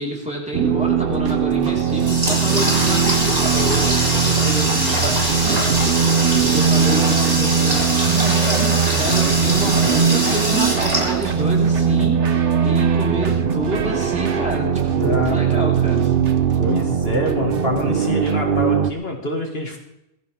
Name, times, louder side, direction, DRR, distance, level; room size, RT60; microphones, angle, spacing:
voice 1, 0.0-5.7 6.4-16.3, equal, 5° right, -4 dB, 4.7 m, -28 dB
sound 1, 0.5-18.9, right 7 dB, 55° right, 0.9 m, -20 dB
sound 2, 1.1-18.4, right 5 dB, 80° right, 1.6 m, -34 dB
Water tap faucet, 1.6-11.8, equal, 35° right, 4.4 m, -23 dB
voice 2, 15.0-15.4 16.6-19.8, left 2 dB, 60° left, 1 dB, 2.3 m, -25 dB
20.5 x 15.0 x 3.7 m, 0.83 s
omnidirectional pair, 1.2 m